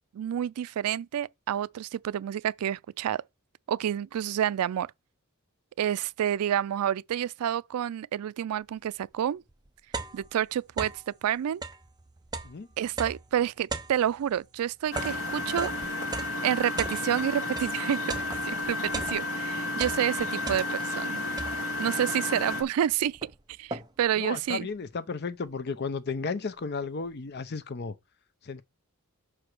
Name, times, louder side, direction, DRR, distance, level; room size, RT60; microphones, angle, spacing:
voice 1, 0.1-3.2 3.7-4.9 5.8-9.4 10.1-11.6 12.8-15.7 16.4-18.1 18.4-18.8 19.1-21.2 21.8-23.2 23.6-24.7, right 10 dB, 90° right, 0.3 m, -29 dB
sound 1, 9.0-9.1 9.5-11.1 11.5-17.8 18.1-19.5 19.7-21.0 21.4-21.9 22.5-22.6 22.9-24.2, right 3 dB, 20° right, 0.7 m, -38 dB
Engine, 14.9-22.6, left 2 dB, 70° left, 2.2 m, -32 dB
voice 2, 24.2-27.9 28.4-28.6, left 4 dB, 50° left, 0.6 m, -34 dB
5.9 x 4.9 x 6.0 m
head